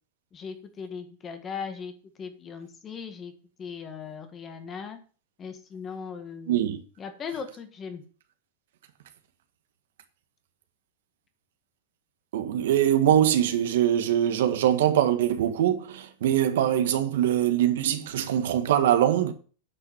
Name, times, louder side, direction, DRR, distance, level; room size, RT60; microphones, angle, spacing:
voice 1, 0.3-3.3 3.6-5.0 5.4-6.6 7.0-8.0, left 6 dB, 20° left, 1.7 m, -38 dB
voice 2, 6.5-6.8 12.3-19.3, right 11 dB, 75° right, 1.7 m, -23 dB
9.6 x 5.9 x 7.4 m
supercardioid pair, 155°, 0 cm